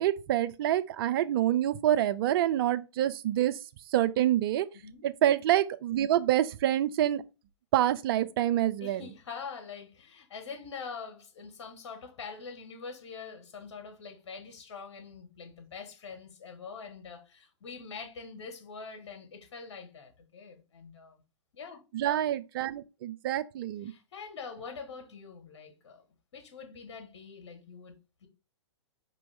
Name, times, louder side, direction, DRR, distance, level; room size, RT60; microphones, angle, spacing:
voice 1, 0.0-3.6 3.9-4.7 5.0-7.2 7.7-9.1 21.9-23.9, right 12 dB, 50° right, 0.5 m, -27 dB
voice 2, 8.8-21.2 21.5-21.8 23.9-26.0 26.3-27.9 28.2-28.3, left 5 dB, 65° left, 1.6 m, -44 dB
5.0 x 3.0 x 3.5 m
hypercardioid pair, 115°, 15 cm